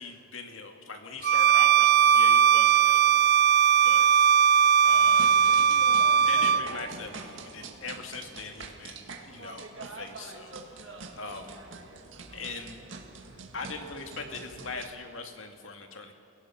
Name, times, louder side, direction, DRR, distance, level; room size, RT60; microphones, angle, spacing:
voice 1, 0.0-3.1 3.8-4.3 4.8-5.3 6.3-11.6 12.3-12.8 13.5-16.1, left 4 dB, 75° left, 4 dB, 2.1 m, -41 dB
Bowed string instrument, 1.2-6.7, right 8 dB, 55° right, 0.4 m, -20 dB
sound 1, 5.0-14.9, right 3 dB, 70° right, 1.8 m, -44 dB
29.0 x 17.0 x 5.8 m, 2.4 s
head